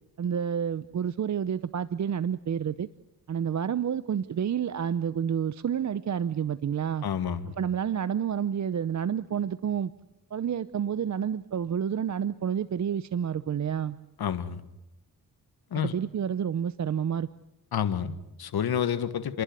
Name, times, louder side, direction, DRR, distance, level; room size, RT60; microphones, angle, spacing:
voice 1, 0.2-2.9 3.3-7.1 7.6-9.9 10.3-14.0 15.8-17.3, right 8 dB, 45° right, 16 dB, 0.7 m, -29 dB
voice 2, 7.0-7.5 14.2-14.6 15.7-15.9 17.7-19.4, left 8 dB, 70° left, 12 dB, 1.6 m, -29 dB
29.5 x 11.5 x 9.4 m, 0.94 s
cardioid pair, 60°, 39 cm